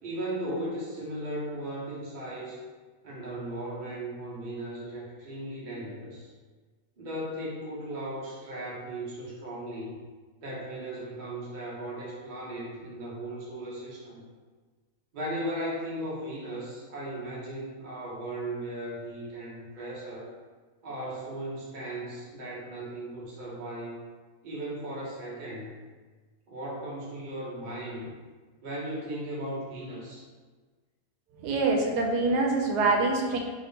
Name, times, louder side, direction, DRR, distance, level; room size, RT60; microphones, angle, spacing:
voice 1, 0.0-2.6 3.0-6.3 7.0-10.0 10.4-14.2 15.1-20.3 20.8-24.0 24.4-25.7 26.5-28.1 28.6-30.3, right 1 dB, 40° right, -5 dB, 0.8 m, -37 dB
voice 2, 31.4-33.4, right 3 dB, 85° right, 1 dB, 1.1 m, -25 dB
3.4 x 3.0 x 2.8 m, 1.4 s
omnidirectional pair, 1.7 m